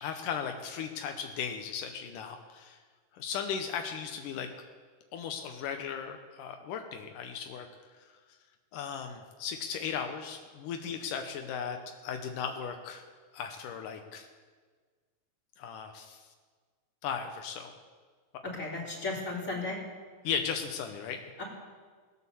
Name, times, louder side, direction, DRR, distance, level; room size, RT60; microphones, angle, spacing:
voice 1, 0.0-2.8 3.1-4.5 5.1-7.7 8.7-11.8 12.0-13.0 13.3-14.3 15.6-16.2 17.0-17.7 20.2-21.2, left 7 dB, 85° left, 5 dB, 2.5 m, -36 dB
voice 2, 18.4-19.8 21.4-21.5, left 3 dB, 25° left, -4 dB, 3.6 m, -35 dB
18.0 x 8.4 x 7.0 m, 1.5 s
omnidirectional pair, 3.7 m